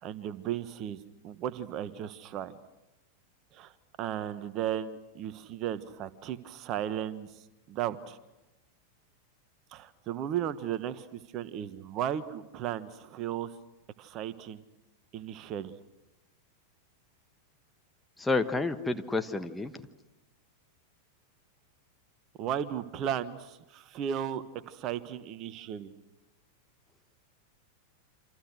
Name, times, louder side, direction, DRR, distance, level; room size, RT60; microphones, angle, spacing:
voice 1, 0.0-2.6 3.5-3.7 4.0-7.3 7.7-8.2 9.7-13.5 14.0-14.6 15.1-15.7 22.4-25.9, right 10 dB, 35° right, 14 dB, 1.3 m, -35 dB
voice 2, 18.2-19.7, left 3 dB, 5° left, 6 dB, 1.3 m, -29 dB
28.0 x 27.0 x 6.4 m, 0.99 s
figure-of-eight pair, 90°, 0 cm